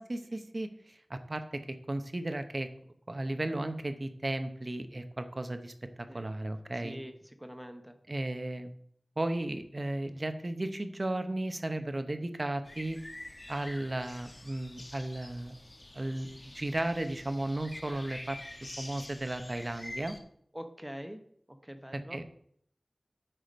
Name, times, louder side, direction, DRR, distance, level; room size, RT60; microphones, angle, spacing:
voice 1, 0.0-2.7 3.1-7.0 8.1-8.7 9.2-13.0 13.5-15.5 15.9-18.4 18.8-20.2 21.9-22.2, right 1 dB, 45° right, 9 dB, 0.8 m, -35 dB
voice 2, 6.8-8.0 20.5-21.2 21.5-22.2, equal, 10° right, 7 dB, 0.8 m, -44 dB
sound 1, 12.6-20.2, left 1 dB, 40° left, 1.1 m, -47 dB
8.9 x 5.0 x 5.2 m, 0.67 s
wide cardioid pair, 50°, 0 cm